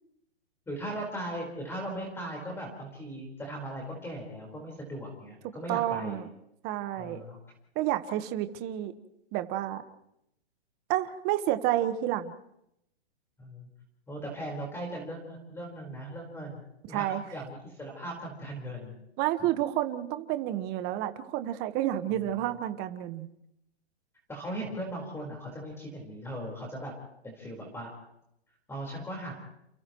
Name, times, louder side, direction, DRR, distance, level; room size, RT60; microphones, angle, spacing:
voice 1, 0.7-6.3 7.0-7.4 13.4-13.7 14.1-18.9 24.3-26.9 27.2-27.9 28.7-29.3, right 1 dB, 10° left, -1 dB, 4.7 m, -38 dB
voice 2, 5.7-6.2 6.6-7.2 7.7-8.9 9.3-9.8 10.9-12.3 16.9-17.2 19.2-23.3, right 13 dB, 30° right, 9 dB, 1.5 m, -30 dB
29.5 x 29.5 x 3.2 m, 0.81 s
hypercardioid pair, 140°, 32 cm